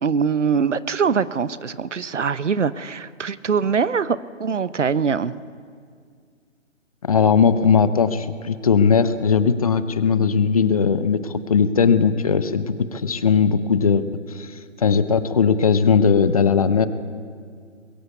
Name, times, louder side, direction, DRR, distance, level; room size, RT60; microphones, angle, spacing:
voice 1, 0.0-5.3, right 6 dB, 65° right, 16 dB, 0.9 m, -23 dB
voice 2, 7.0-14.0 14.3-14.5 14.8-16.9, left 6 dB, 30° left, 13 dB, 0.7 m, -18 dB
23.0 x 22.0 x 8.3 m, 2.1 s
figure-of-eight pair, 145°, 39 cm